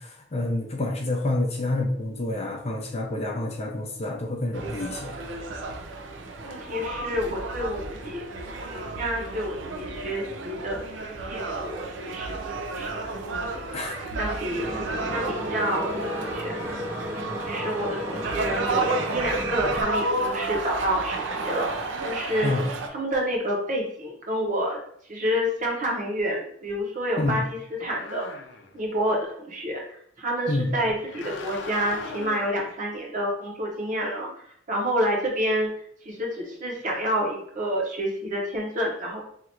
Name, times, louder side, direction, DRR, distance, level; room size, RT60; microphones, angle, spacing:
voice 1, 0.0-5.1 13.7-14.1 14.7-14.9 22.4-22.7 27.2-27.4 30.5-30.8, left 2 dB, 35° left, 1 dB, 0.6 m, -28 dB
sound 1, 4.5-22.9, right 3 dB, 90° right, 0.5 m, -32 dB
voice 2, 6.4-8.2 8.7-10.8 11.3-13.7 14.2-14.7 15.1-16.8 17.4-21.7 22.0-22.5 22.9-24.8 25.1-28.2 28.7-29.8 30.2-34.3 34.7-35.7 36.0-39.2, equal, 45° right, -1 dB, 1.0 m, -29 dB
sound 2, 14.4-19.8, equal, 15° right, 0.6 m, -34 dB
sound 3, 27.8-28.9 31.0-32.7, left 4 dB, 80° left, 0.5 m, -39 dB
2.9 x 2.5 x 4.3 m, 0.64 s
head